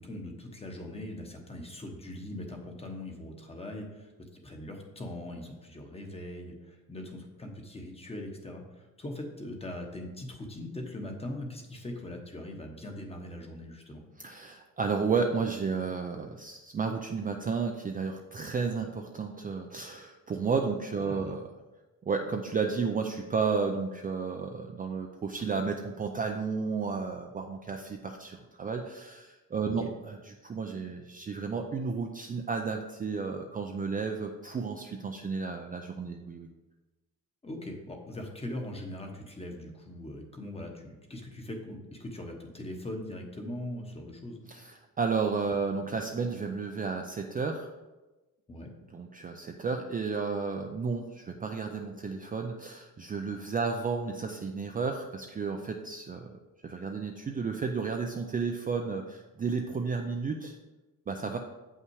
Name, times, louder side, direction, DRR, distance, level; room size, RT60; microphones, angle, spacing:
voice 1, 0.0-4.1 4.4-14.0 21.0-21.4 29.6-29.9 37.4-44.4 48.5-48.7, left 1 dB, 15° left, 3 dB, 1.0 m, -41 dB
voice 2, 14.2-21.4 22.1-36.5 44.5-47.7 48.9-60.5 61.1-61.4, right 5 dB, 25° right, 3 dB, 0.4 m, -32 dB
8.2 x 5.6 x 4.7 m, 1.1 s
cardioid pair, 165°, 36 cm